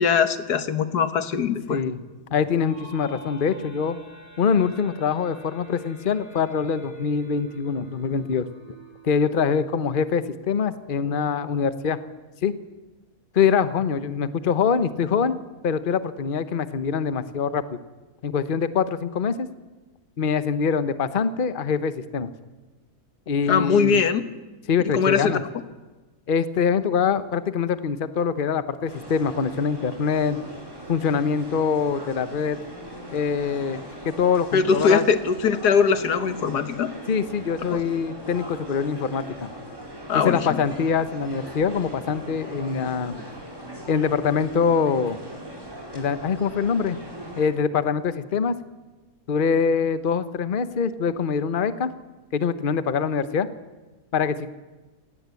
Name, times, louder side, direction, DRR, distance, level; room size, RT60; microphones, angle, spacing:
voice 1, 0.0-1.8 23.5-24.2 24.9-25.4 34.5-36.9 37.7-37.8 40.1-40.6, left 6 dB, 90° left, 11 dB, 1.9 m, -21 dB
voice 2, 1.7-2.0 2.3-4.0 4.4-8.5 9.0-12.0 12.4-12.5 13.3-15.4 15.6-17.8 18.2-19.5 20.2-22.3 23.3-24.0 24.7-25.4 26.3-30.4 30.9-32.6 33.1-35.0 37.1-39.5 40.1-43.2 43.9-45.2 45.9-47.0 47.4-48.5 49.3-51.9 52.3-53.5 54.1-54.5, left 6 dB, 40° left, 13 dB, 1.0 m, -24 dB
sound 1, 2.6-10.3, right 1 dB, 55° left, 8.2 m, -46 dB
sound 2, 28.9-47.5, equal, 15° right, 5.0 m, -40 dB
27.0 x 18.5 x 8.3 m, 1.2 s
omnidirectional pair, 1.7 m